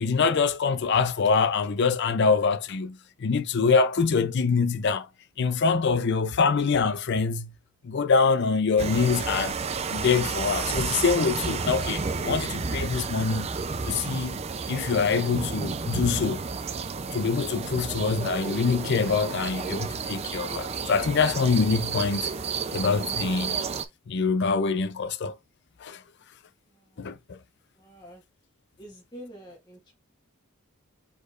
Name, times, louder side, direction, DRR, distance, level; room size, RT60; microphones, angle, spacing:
voice 1, 0.0-5.1 5.4-7.5 7.8-9.6 9.9-13.5 13.9-14.4 14.7-16.4 17.1-22.3 22.7-23.6 24.1-25.3 25.8-26.0 27.0-27.4, left 5 dB, 50° left, 0.5 m, -24 dB
sound 1, 8.8-23.9, right 5 dB, 30° right, 0.4 m, -31 dB
voice 2, 26.7-27.1 27.7-28.2 28.8-29.9, equal, 20° left, 1.4 m, -47 dB
5.1 x 4.3 x 2.4 m
head